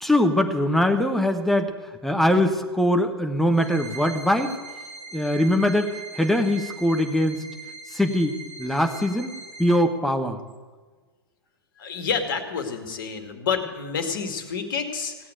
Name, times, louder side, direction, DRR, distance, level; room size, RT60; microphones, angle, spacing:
voice 1, 0.0-1.7 2.0-4.5 5.1-5.9 6.2-7.4 7.9-9.3 9.6-10.4, left 1 dB, ahead, 5 dB, 1.2 m, -22 dB
sound 1, 3.5-9.7, right 3 dB, 25° right, 3.5 m, -41 dB
voice 2, 11.8-15.3, left 6 dB, 55° left, 6 dB, 2.2 m, -29 dB
17.0 x 8.6 x 9.2 m, 1.4 s
figure-of-eight pair, 110°, 13 cm